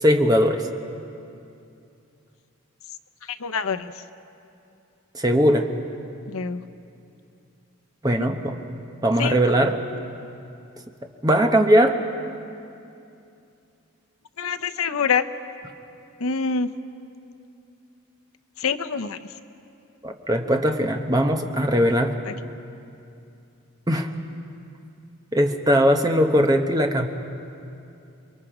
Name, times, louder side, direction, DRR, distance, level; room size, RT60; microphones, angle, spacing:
voice 1, 0.0-0.7 5.1-5.7 8.0-8.6 9.0-9.8 11.2-12.0 20.0-22.1 23.9-24.1 25.3-27.1, equal, 15° right, 4 dB, 1.0 m, -19 dB
voice 2, 3.3-3.9 6.3-6.6 8.2-8.3 9.2-9.4 14.4-15.2 16.2-16.7 18.6-19.2 22.3-22.4, left 5 dB, 85° left, 9 dB, 0.8 m, -25 dB
30.0 x 22.5 x 5.0 m, 2.6 s
head